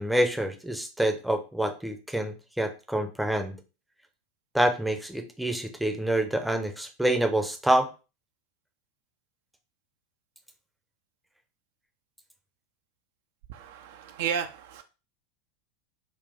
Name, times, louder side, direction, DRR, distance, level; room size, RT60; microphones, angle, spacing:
voice 1, 0.0-3.5 4.5-7.9, right 1 dB, 5° right, 0.6 m, -27 dB
voice 2, 13.5-14.8, right 8 dB, 55° right, 0.4 m, -33 dB
4.0 x 2.3 x 3.4 m
figure-of-eight pair, 85°, 0 cm